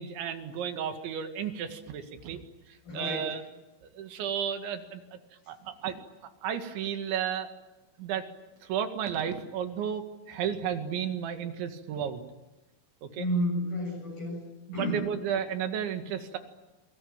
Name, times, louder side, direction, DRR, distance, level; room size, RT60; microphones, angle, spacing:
voice 1, 0.0-2.4 2.7-3.4 3.9-5.0 5.5-6.0 6.4-7.5 8.0-8.3 8.6-12.2 13.0-13.3 14.7-16.4, right 8 dB, 70° right, 7 dB, 4.2 m, -33 dB
voice 2, 2.9-3.3 13.2-14.4 14.7-15.1, equal, 50° left, -2 dB, 9.0 m, -31 dB
28.0 x 22.5 x 9.0 m, 1.0 s
omnidirectional pair, 5.6 m